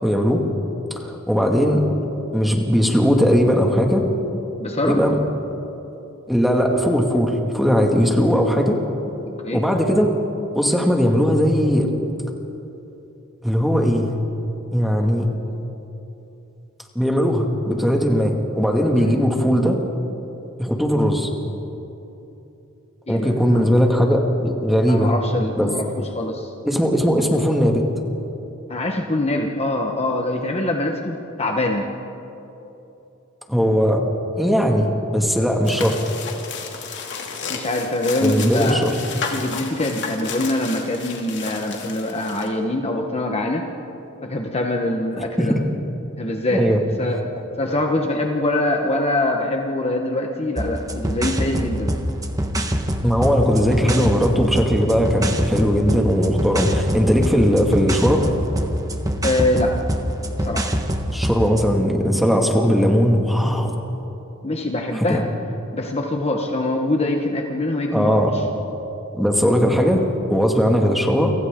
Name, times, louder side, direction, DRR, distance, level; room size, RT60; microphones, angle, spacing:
voice 1, 0.0-0.4 1.0-1.8 2.3-4.1 4.8-5.2 6.3-8.8 9.5-10.1 10.5-11.9 13.4-14.1 14.7-15.3 17.0-19.8 20.6-21.3 23.1-25.1 25.6-25.7 26.6-27.8 33.5-34.1 34.4-36.0 38.2-38.9 45.4-45.6 46.5-46.8 53.0-58.3 61.1-63.7 65.0-65.2 67.9-68.3 69.2-71.3, equal, ahead, 1 dB, 2.2 m, -18 dB
voice 2, 4.6-5.0 9.2-9.6 18.9-19.2 23.1-23.7 24.9-26.5 28.7-31.9 37.5-38.9 39.3-43.7 44.2-45.6 46.2-47.2 47.6-51.9 59.2-59.8 60.4-60.7 64.4-65.3 65.7-68.4, left 1 dB, 30° left, 2 dB, 1.3 m, -24 dB
sound 1, 35.6-42.5, left 5 dB, 55° left, 2.7 m, -32 dB
sound 2, 50.6-61.7, equal, 15° right, 1.4 m, -25 dB
29.0 x 25.5 x 3.8 m, 3.0 s
head